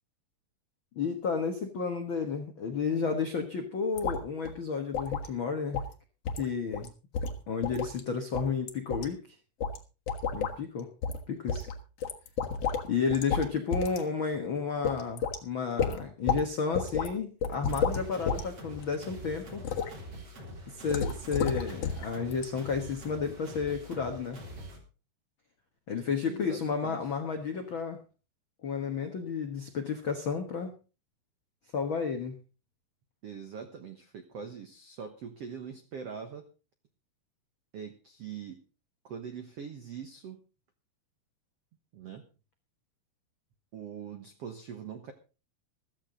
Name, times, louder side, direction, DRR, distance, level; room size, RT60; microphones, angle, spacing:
voice 1, 0.9-5.8 6.3-6.9 7.5-9.3 10.3-10.9 11.3-11.7 12.8-19.6 20.7-24.4 25.9-28.0 28.6-30.7 31.7-32.4, left 5 dB, 90° left, 5 dB, 1.1 m, -32 dB
sound 1, 4.0-4.2 4.5-4.6 4.9-5.3 5.7-5.9 6.3-6.5 6.7-6.9 7.1-8.0 8.3-9.1 9.6-9.8 10.1-10.5 11.0-11.2 11.5-12.9 13.1-13.5 13.7-14.0 14.3-14.4 14.8-15.4 15.8-16.4 16.7-17.1 17.4-18.4 18.8-19.1 19.6-19.9 20.9-22.1 22.3-22.4, left 6 dB, 55° left, 1.9 m, -31 dB
sound 2, 17.7-24.8, equal, 35° right, 4.2 m, -45 dB
voice 2, 26.2-27.1 33.2-36.5 37.7-38.6 39.0-40.4 41.9-42.2 43.7-45.1, right 7 dB, 80° right, 7 dB, 1.3 m, -42 dB
15.0 x 13.5 x 3.9 m, 0.33 s
omnidirectional pair, 4.7 m